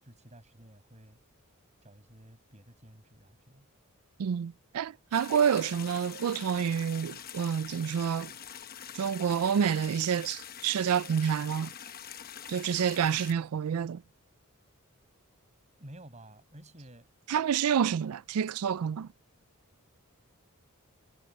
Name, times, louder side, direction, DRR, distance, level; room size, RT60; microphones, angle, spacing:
voice 1, 0.0-1.2 1.8-3.7 15.8-17.1, right 1 dB, 30° right, 5.9 m, -52 dB
voice 2, 4.2-8.3 8.9-11.7 12.5-14.0 17.3-19.1, right 7 dB, 85° right, 0.4 m, -28 dB
sound 1, 5.1-13.3, left 9 dB, 45° left, 1.0 m, -45 dB
head